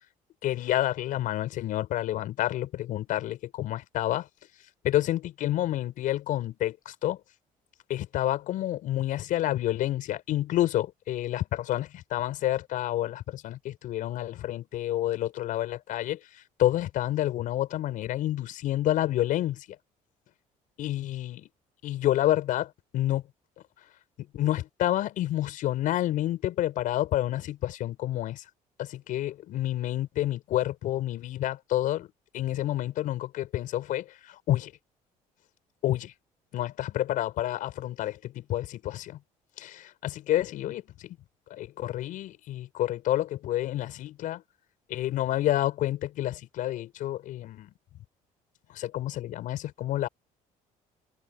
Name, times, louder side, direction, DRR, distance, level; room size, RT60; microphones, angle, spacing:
voice 1, 0.4-4.3 4.8-7.2 7.9-16.2 16.6-19.7 20.8-21.5 21.8-23.2 24.3-28.4 28.8-32.1 32.3-34.7 35.8-36.1 36.5-39.2 39.6-41.2 41.5-44.4 44.9-47.7 48.7-50.1, left 13 dB, 70° left, 6.9 m, -29 dB
cardioid pair, 135°, 14 cm